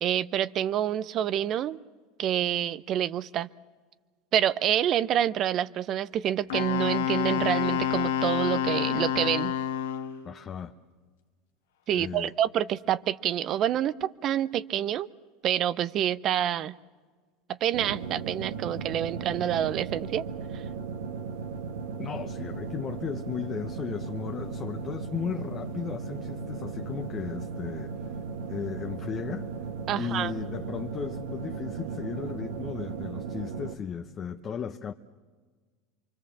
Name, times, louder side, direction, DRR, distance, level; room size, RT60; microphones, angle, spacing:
voice 1, 0.0-1.8 2.2-3.5 4.3-9.5 11.9-15.1 15.4-16.7 17.6-20.2 29.9-30.3, right 11 dB, 45° right, 0.7 m, -27 dB
Wind instrument woodwind instrument, 6.5-10.2, left 10 dB, 90° left, 1.4 m, -28 dB
voice 2, 10.2-10.7 11.9-12.3 22.0-27.9 28.5-29.5 30.0-34.9, left 7 dB, 30° left, 0.9 m, -35 dB
sound 1, 17.7-33.7, right 5 dB, 75° right, 1.6 m, -36 dB
25.5 x 24.5 x 7.4 m
supercardioid pair, 115°, 0 cm